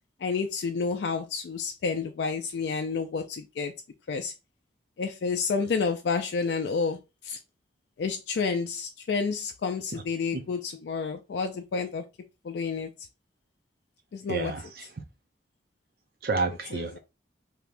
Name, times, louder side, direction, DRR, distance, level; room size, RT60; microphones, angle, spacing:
voice 1, 0.2-3.7 4.1-4.3 5.0-7.4 8.0-12.0 12.4-12.9 14.1-14.5 16.7-17.0, left 5 dB, 80° left, 0.3 m, -30 dB
voice 2, 14.3-14.9 16.2-17.0, right 3 dB, 55° right, 0.5 m, -30 dB
3.3 x 2.8 x 2.5 m
head